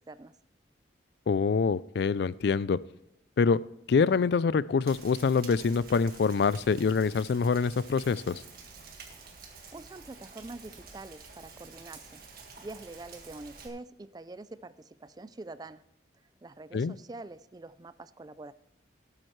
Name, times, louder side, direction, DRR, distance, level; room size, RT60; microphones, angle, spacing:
voice 1, 1.3-2.8 3.4-3.6 3.9-8.4 16.7-17.0, left 5 dB, 60° left, 19 dB, 0.3 m, -25 dB
Rain, 4.9-13.7, right 4 dB, 50° right, 1.8 m, -49 dB
voice 2, 9.7-12.2 12.6-15.8 16.4-18.5, right 2 dB, 20° right, 15 dB, 0.3 m, -45 dB
18.5 x 8.7 x 3.2 m, 0.78 s
head